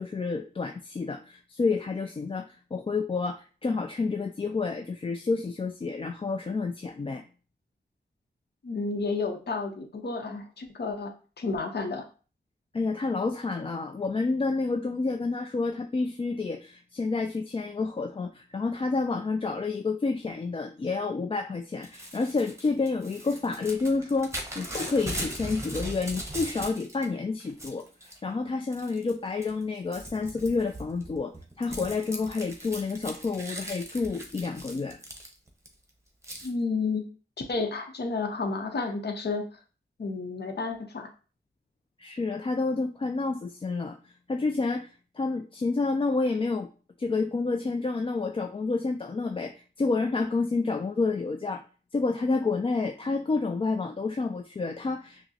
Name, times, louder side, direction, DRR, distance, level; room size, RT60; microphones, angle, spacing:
voice 1, 0.0-7.2 12.7-35.0 42.0-46.7 47.0-51.6 51.9-55.3, left 3 dB, 30° left, 5 dB, 0.3 m, -29 dB
voice 2, 8.6-12.0 36.4-37.0 37.5-39.6 40.0-41.1, left 4 dB, 60° left, 4 dB, 0.7 m, -31 dB
Crumpling crinkling / Tearing, 21.8-27.1 27.4-28.2 28.7-29.1 29.4-35.7 36.2-36.5, right 1 dB, 15° right, 0.9 m, -39 dB
5.8 x 2.0 x 2.8 m, 0.37 s
wide cardioid pair, 65°, 19 cm